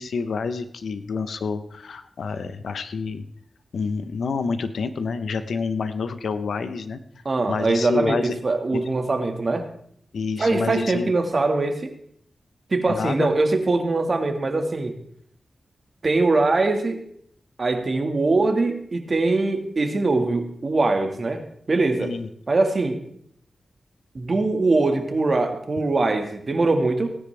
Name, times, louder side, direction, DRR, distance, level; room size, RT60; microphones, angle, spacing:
voice 1, 0.0-3.2 3.7-7.0 7.5-8.4 8.7-8.8 10.1-11.1 12.9-13.4 22.0-22.3, left 5 dB, 85° left, 11 dB, 0.9 m, -28 dB
voice 2, 7.3-9.7 10.4-11.9 12.7-14.9 16.0-17.0 17.6-21.4 21.7-22.1 22.5-23.0 24.2-27.1, right 3 dB, 50° right, 5 dB, 1.8 m, -22 dB
17.5 x 9.8 x 3.4 m, 0.66 s
cardioid pair, 65°, 0 cm